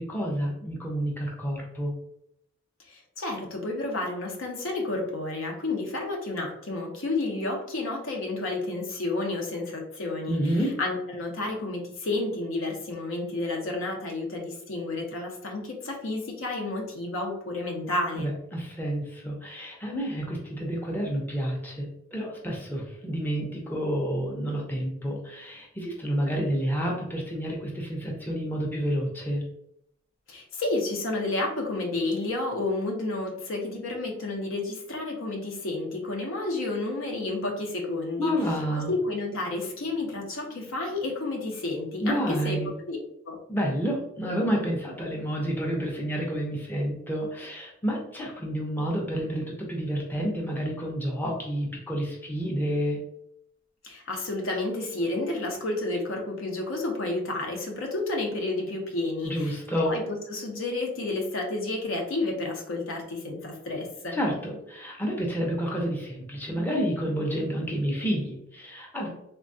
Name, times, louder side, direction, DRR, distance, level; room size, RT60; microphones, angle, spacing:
voice 1, 0.0-1.9 10.3-10.8 18.2-29.4 38.2-38.9 42.0-42.8 43.5-53.0 59.2-59.9 64.1-69.1, equal, 10° left, -2 dB, 0.5 m, -29 dB
voice 2, 2.9-18.3 30.3-38.3 38.9-42.6 42.9-43.0 43.3-43.4 53.8-60.0 60.3-64.2, left 2 dB, 80° left, 1 dB, 0.7 m, -31 dB
3.3 x 2.2 x 2.6 m, 0.76 s
head